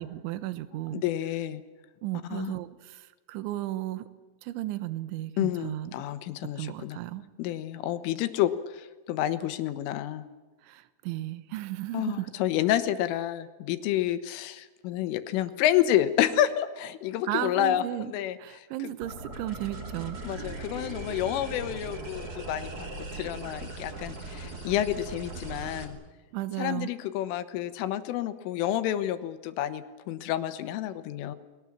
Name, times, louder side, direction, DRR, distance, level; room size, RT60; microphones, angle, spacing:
voice 1, 0.0-1.0 2.0-3.0 3.3-4.0 4.4-5.9 6.6-7.2 10.7-12.3 17.3-18.1 18.4-20.2 26.3-26.9, right 15 dB, 75° right, 12 dB, 3.2 m, -34 dB
voice 2, 0.9-1.6 2.3-2.5 5.4-7.0 7.4-10.3 11.9-18.9 20.2-26.0 26.6-31.4, left 12 dB, 75° left, 11 dB, 3.5 m, -29 dB
sound 1, 19.0-25.8, right 2 dB, 25° right, 2.1 m, -39 dB
29.5 x 21.5 x 7.4 m, 1.3 s
omnidirectional pair, 5.9 m